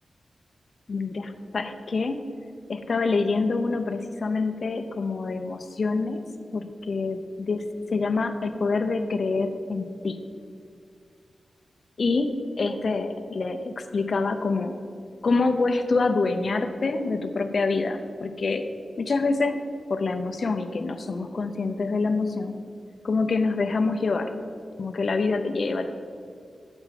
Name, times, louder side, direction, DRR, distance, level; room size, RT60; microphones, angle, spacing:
voice 1, 0.9-2.2 2.7-6.2 6.5-10.2 12.0-14.8 15.2-18.6 19.0-19.6 19.9-22.6 23.0-24.3 24.8-25.9, left 3 dB, 50° left, 8 dB, 0.6 m, -26 dB
6.9 x 5.8 x 5.9 m, 2.3 s
wide cardioid pair, 130°, 0 cm